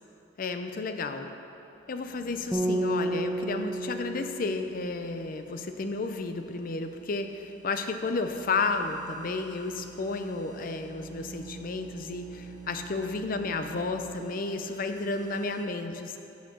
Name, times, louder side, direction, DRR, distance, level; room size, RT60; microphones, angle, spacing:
voice 1, 0.4-1.3 1.9-16.2, left 3 dB, 50° left, 7 dB, 0.5 m, -32 dB
sound 1, 1.8-15.6, right 5 dB, 20° left, 1.1 m, -48 dB
sound 2, 2.5-5.7, right 1 dB, 10° right, 0.7 m, -32 dB
7.0 x 6.5 x 6.2 m, 2.9 s
head